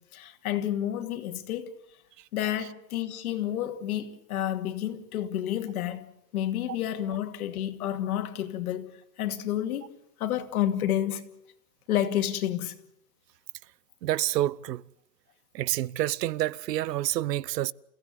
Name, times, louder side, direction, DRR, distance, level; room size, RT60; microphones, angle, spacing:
voice 1, 0.1-1.7 2.3-6.1 6.3-8.9 9.2-9.9 10.2-11.2 11.9-12.8, left 11 dB, 60° left, 2.6 m, -30 dB
voice 2, 14.0-14.8 15.5-17.7, right 14 dB, 80° right, 0.9 m, -28 dB
29.0 x 16.5 x 8.1 m
supercardioid pair, 170°, 48 cm